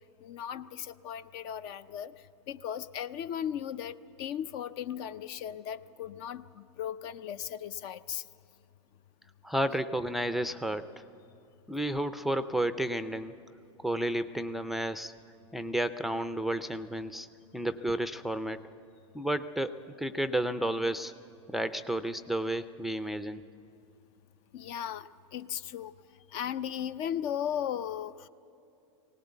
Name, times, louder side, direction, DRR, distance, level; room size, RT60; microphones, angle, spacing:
voice 1, 0.2-8.3 24.5-25.9 26.3-28.3, left 9 dB, 50° left, 14 dB, 0.6 m, -37 dB
voice 2, 9.4-10.9 11.7-13.3 13.8-15.1 15.5-17.3 17.5-18.6 19.1-21.1 21.5-23.4, right 1 dB, ahead, 11 dB, 0.5 m, -31 dB
19.5 x 18.0 x 8.2 m, 2.7 s
hypercardioid pair, 120°, 16 cm